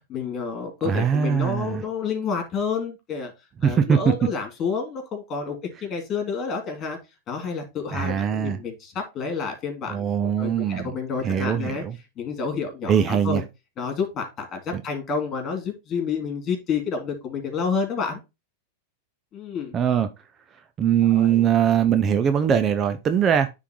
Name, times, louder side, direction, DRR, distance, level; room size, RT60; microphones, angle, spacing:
voice 1, 0.1-3.3 3.6-7.0 7.3-10.1 10.4-11.8 12.2-13.4 13.8-18.2 19.3-19.8 21.0-21.4, left 5 dB, 35° left, 2.9 m, -29 dB
voice 2, 0.8-1.8 3.6-4.1 7.9-8.6 9.9-10.9 11.2-11.9 12.9-13.4 19.7-20.1 20.8-23.5, right 8 dB, 30° right, 0.6 m, -21 dB
9.9 x 3.8 x 3.1 m
hypercardioid pair, 110°, 0 cm